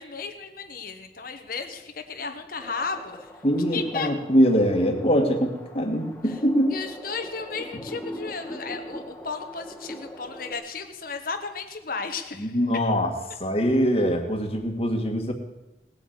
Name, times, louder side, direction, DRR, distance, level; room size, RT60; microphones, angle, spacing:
voice 1, 0.0-3.3 3.7-4.1 6.3-6.4 6.7-12.6, left 4 dB, 50° left, 6 dB, 1.4 m, -34 dB
sound 1, 2.6-10.5, equal, 10° left, 1.7 m, -42 dB
voice 2, 3.4-6.7 12.4-13.1 13.4-15.3, equal, 30° left, 3 dB, 1.9 m, -23 dB
18.5 x 8.5 x 8.1 m, 1.0 s
head